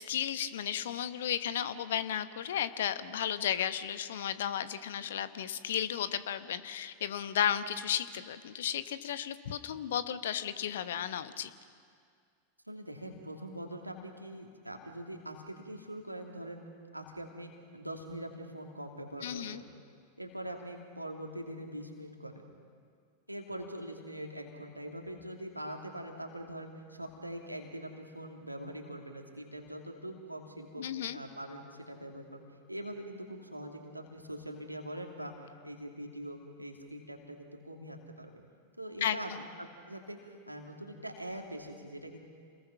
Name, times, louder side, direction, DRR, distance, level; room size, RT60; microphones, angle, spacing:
voice 1, 0.0-11.5 19.2-19.6 30.8-31.2 39.0-39.4, left 9 dB, 60° left, 12 dB, 1.1 m, -34 dB
voice 2, 12.7-16.6 16.9-19.6 20.2-22.4 23.3-30.9 31.1-32.4 32.7-38.4 38.8-39.3 39.6-42.2, right 1 dB, 85° right, 2 dB, 2.8 m, -43 dB
29.0 x 21.0 x 5.9 m, 2.1 s
figure-of-eight pair, 90°, 0 cm